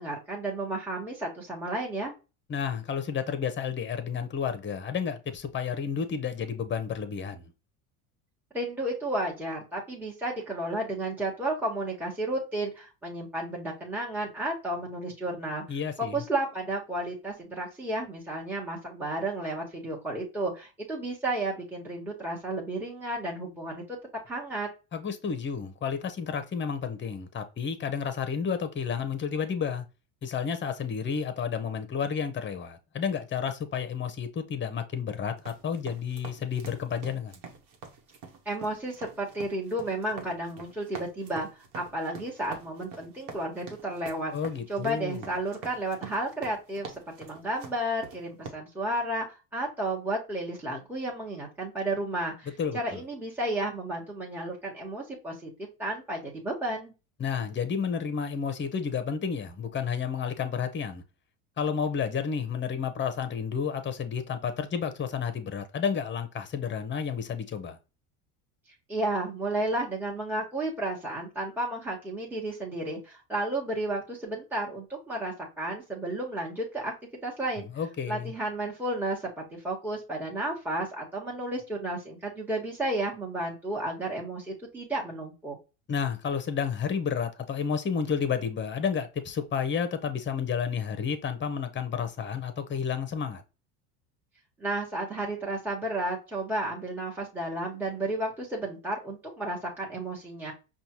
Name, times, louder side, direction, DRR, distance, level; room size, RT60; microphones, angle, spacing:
voice 1, 0.0-2.1 8.5-15.6 16.0-24.0 24.2-24.7 38.4-41.5 41.7-44.3 44.7-52.5 52.7-56.9 68.9-76.9 77.2-77.7 78.1-85.6 94.6-100.5, right 1 dB, 5° right, 1.3 m, -32 dB
voice 2, 2.5-7.5 15.7-16.2 24.9-29.8 30.2-37.4 44.3-45.3 52.6-53.0 57.2-61.0 61.6-67.8 77.7-78.3 85.9-93.4, left 7 dB, 25° left, 0.8 m, -31 dB
sound 1, 35.4-48.5, right 5 dB, 60° right, 1.2 m, -45 dB
5.3 x 2.4 x 3.0 m
supercardioid pair, 90°, 45 cm